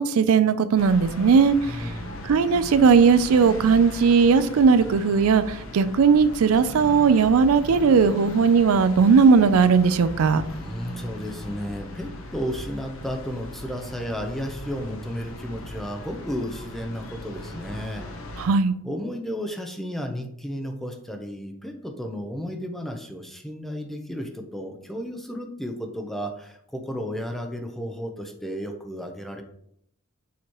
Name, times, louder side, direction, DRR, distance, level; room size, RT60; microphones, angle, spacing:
voice 1, 0.0-1.9 2.2-10.4 18.4-18.7, right 5 dB, 80° right, 13 dB, 0.4 m, -18 dB
sound 1, 0.8-18.5, left 1 dB, 70° left, 0.9 m, -38 dB
voice 2, 1.6-2.3 10.5-18.1 18.8-29.4, equal, ahead, 4 dB, 0.7 m, -33 dB
7.1 x 3.1 x 4.5 m, 0.71 s
head